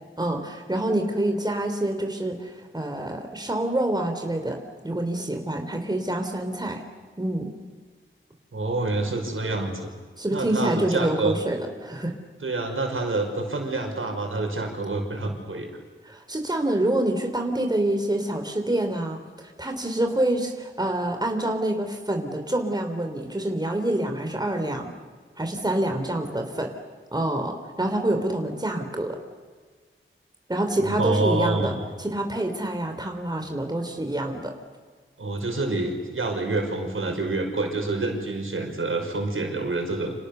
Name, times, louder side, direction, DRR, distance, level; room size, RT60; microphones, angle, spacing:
voice 1, 0.2-6.8 7.2-7.5 10.2-12.1 16.0-24.9 25.4-26.7 27.1-29.2 30.5-31.7 32.0-34.5, right 1 dB, 20° right, 4 dB, 3.3 m, -27 dB
voice 2, 8.5-9.9 10.3-11.4 12.4-15.7 30.8-31.7 35.2-40.1, right 2 dB, 75° right, 3 dB, 5.7 m, -27 dB
30.0 x 27.5 x 6.9 m, 1.5 s
wide cardioid pair, 85°, 21 cm